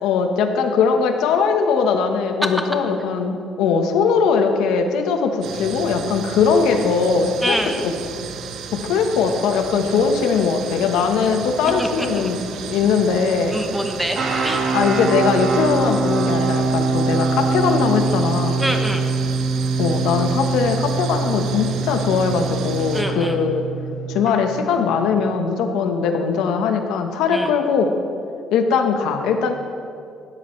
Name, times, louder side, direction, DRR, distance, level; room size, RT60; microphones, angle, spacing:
voice 1, 0.0-7.6 8.7-12.4 12.7-13.6 14.7-18.7 19.8-23.6 24.1-27.9 28.5-29.6, left 5 dB, 90° left, 5 dB, 1.3 m, -20 dB
sound 1, 5.4-23.0, right 6 dB, 65° right, 1.0 m, -34 dB
voice 2, 7.4-7.8 11.8-12.1 13.5-14.7 18.6-19.1 22.9-23.4 27.3-27.5, equal, 5° right, 4 dB, 1.0 m, -25 dB
sound 2, 14.1-24.3, right 4 dB, 35° right, 1.6 m, -23 dB
17.5 x 13.0 x 3.3 m, 2.5 s
cardioid pair, 175°, 0 cm